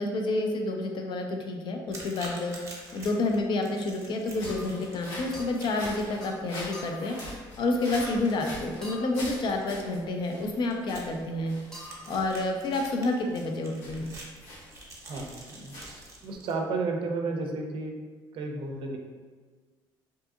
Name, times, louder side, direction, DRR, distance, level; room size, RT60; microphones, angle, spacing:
voice 1, 0.0-2.5 2.9-7.2 7.6-11.5 12.1-14.1, left 2 dB, 55° left, 2 dB, 0.4 m, -29 dB
sound 1, 1.9-16.5, right 1 dB, 30° right, 0.7 m, -48 dB
sound 2, 4.3-16.4, left 1 dB, 85° left, 0.9 m, -44 dB
sound 3, 4.4-4.8 5.3-5.6 6.2-6.4 6.7-7.1 8.0-8.3 8.8-9.2 11.7-12.2, equal, 5° left, 0.8 m, -45 dB
voice 2, 15.0-17.9 18.3-19.0, right 3 dB, 60° right, 2 dB, 0.4 m, -33 dB
2.6 x 2.5 x 2.4 m, 1.5 s
supercardioid pair, 80°, 10 cm